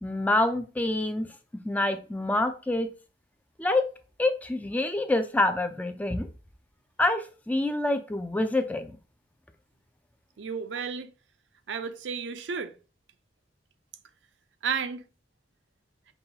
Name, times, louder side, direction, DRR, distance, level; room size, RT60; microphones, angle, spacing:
voice 1, 0.0-1.3 1.6-2.9 3.6-3.8 4.2-6.3 7.0-8.9, left 2 dB, 10° left, 0.3 m, -26 dB
voice 2, 10.4-11.1 11.7-12.7 14.6-15.0, right 6 dB, 75° right, 0.5 m, -32 dB
5.3 x 2.3 x 2.8 m
head